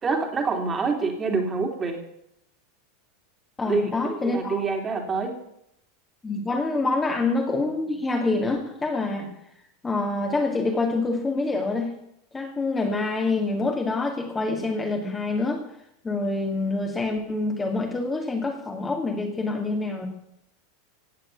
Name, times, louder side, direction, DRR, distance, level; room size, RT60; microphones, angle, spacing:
voice 1, 0.0-2.0 3.7-5.4, right 4 dB, 20° right, 4 dB, 3.0 m, -26 dB
voice 2, 3.6-4.6 6.2-9.3 9.8-11.9 12.3-15.6 16.0-20.1, left 3 dB, 15° left, 2 dB, 2.3 m, -26 dB
16.5 x 7.5 x 8.6 m, 0.77 s
supercardioid pair, 125°, 0 cm